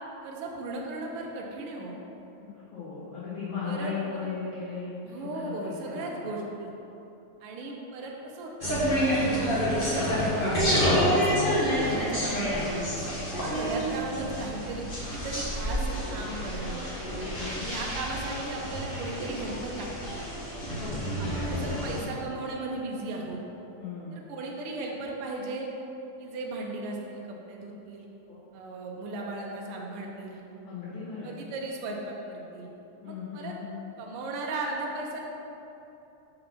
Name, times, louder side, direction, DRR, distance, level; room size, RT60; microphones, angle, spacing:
voice 1, 0.2-2.0 3.6-4.3 5.0-6.7 7.4-9.0 9.7-10.5 10.8-12.9 13.3-16.8 17.5-19.9 21.2-23.4 24.1-25.7 26.2-28.1 28.5-30.4 31.2-32.7 33.1-33.5 34.0-35.2, right 2 dB, 75° right, -1 dB, 1.3 m, -36 dB
voice 2, 2.4-4.9 5.2-6.1 17.3-17.7 20.8-21.5 23.8-24.2 28.2-28.4 30.6-31.4 33.0-33.8, left 5 dB, 55° left, -14 dB, 2.3 m, -37 dB
sound 1, 8.6-22.0, equal, 75° left, 0.5 m, -28 dB
5.8 x 3.9 x 5.8 m, 3.0 s
omnidirectional pair, 3.5 m